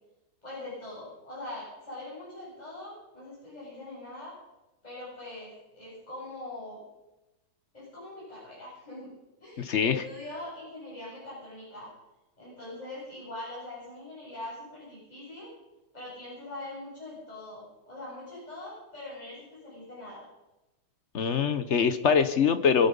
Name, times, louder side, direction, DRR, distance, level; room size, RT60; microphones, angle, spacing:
voice 1, 0.4-4.3 4.8-6.8 7.7-9.1 9.4-11.9 12.4-15.5 15.9-20.2, left 2 dB, 20° left, -8 dB, 7.8 m, -42 dB
voice 2, 9.6-10.0 21.1-22.9, left 6 dB, 55° left, 11 dB, 0.8 m, -24 dB
23.5 x 11.0 x 5.3 m, 0.99 s
omnidirectional pair, 2.2 m